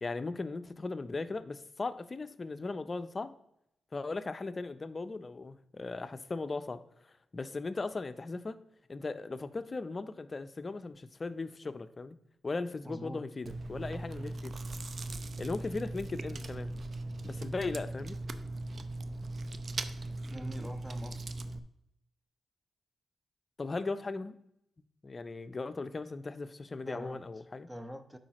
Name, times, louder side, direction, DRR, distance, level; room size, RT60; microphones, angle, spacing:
voice 1, 0.0-3.3 3.9-6.8 7.3-8.6 8.9-12.2 12.4-14.5 15.4-16.7 17.2-18.2 23.6-24.3 25.0-27.7, left 3 dB, 35° left, 11 dB, 0.5 m, -38 dB
voice 2, 12.8-13.2 20.3-21.3 26.8-27.2 27.7-28.2, equal, 10° right, 9 dB, 0.8 m, -43 dB
Chewing mastication, 13.4-21.6, right 2 dB, 50° right, 0.6 m, -39 dB
11.5 x 4.8 x 3.0 m, 0.79 s
cardioid pair, 80°, 0 cm